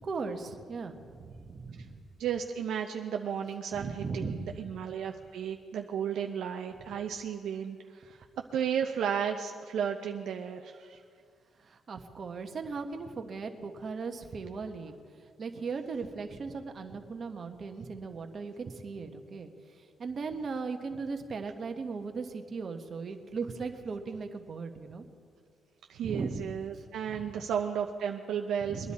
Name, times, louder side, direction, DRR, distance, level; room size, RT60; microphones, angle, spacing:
voice 1, 0.0-2.0 3.7-4.6 11.6-14.9 15.4-19.5 19.8-25.0 26.0-27.4 28.6-28.9, right 4 dB, 45° right, 5 dB, 1.2 m, -38 dB
voice 2, 2.2-8.2 8.5-11.0 25.9-28.9, right 8 dB, 75° right, 4 dB, 0.6 m, -34 dB
21.5 x 10.5 x 4.3 m, 2.2 s
cardioid pair, 90°, 0 cm